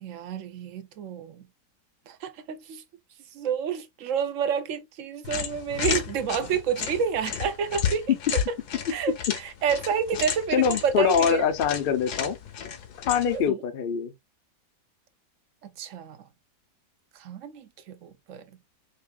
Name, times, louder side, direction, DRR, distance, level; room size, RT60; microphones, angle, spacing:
voice 1, 0.0-1.4 2.1-2.8 3.3-8.1 8.5-8.6 8.9-9.2 9.6-11.4 13.3-13.6 15.8-16.2 17.2-18.4, right 7 dB, 65° right, 0.9 m, -29 dB
sound 1, 5.2-13.5, left 8 dB, 75° left, 1.3 m, -33 dB
voice 2, 10.5-12.4 13.1-14.1, left 7 dB, 60° left, 0.6 m, -24 dB
5.3 x 2.4 x 2.3 m
omnidirectional pair, 1.7 m